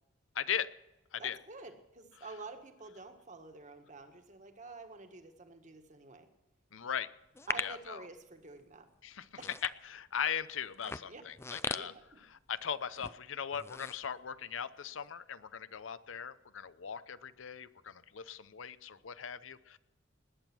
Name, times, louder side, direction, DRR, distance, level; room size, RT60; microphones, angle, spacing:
voice 1, 0.3-0.7 1.1-1.4 6.7-7.1 7.6-8.0 9.0-9.3 9.6-11.9 12.3-19.8, left 8 dB, 90° left, 15 dB, 0.7 m, -39 dB
voice 2, 1.2-6.3 7.5-8.9 9.4-9.5 11.1-11.2 11.7-12.2, right 3 dB, 40° right, 6 dB, 1.6 m, -49 dB
sound 1, 7.3-7.9 8.5-8.8 9.3-10.2 10.7-12.6 12.9-13.2 13.5-14.7 15.1-15.2, left 3 dB, 15° left, 0.4 m, -39 dB
19.5 x 9.0 x 6.1 m, 0.99 s
head